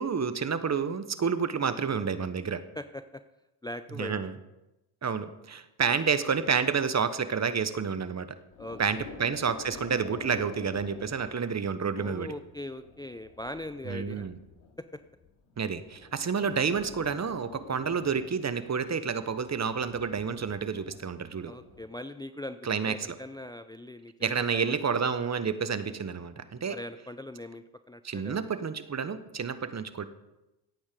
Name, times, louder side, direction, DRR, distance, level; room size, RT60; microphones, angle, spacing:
voice 1, 0.0-2.6 4.0-4.3 5.0-8.3 8.8-12.3 13.9-14.4 15.6-21.5 22.6-23.2 24.2-26.8 28.0-30.1, right 6 dB, 35° right, 12 dB, 1.2 m, -29 dB
voice 2, 2.8-3.2 3.6-4.1 8.6-9.1 12.0-14.3 14.9-15.0 21.4-22.6 22.9-24.8 25.0-25.1 26.7-28.5, left 1 dB, 10° left, 10 dB, 0.6 m, -41 dB
sound 1, 8.5-21.9, left 5 dB, 70° left, 2.6 m, -49 dB
16.5 x 8.6 x 5.3 m, 0.97 s
hypercardioid pair, 55°, 46 cm